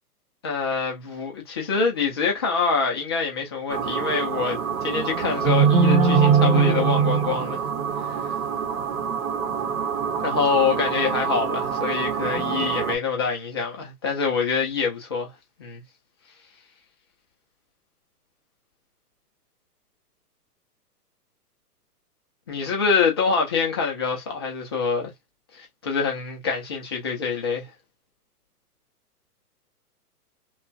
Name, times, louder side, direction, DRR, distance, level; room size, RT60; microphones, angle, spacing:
voice 1, 0.4-7.6 8.0-8.3 10.2-15.3 15.6-15.8 22.5-25.1 25.5-27.7, left 5 dB, 20° left, 0.4 m, -25 dB
sound 1, 3.7-13.0, right 6 dB, 55° right, 0.9 m, -23 dB
3.0 x 2.3 x 2.5 m
hypercardioid pair, 135°, 47 cm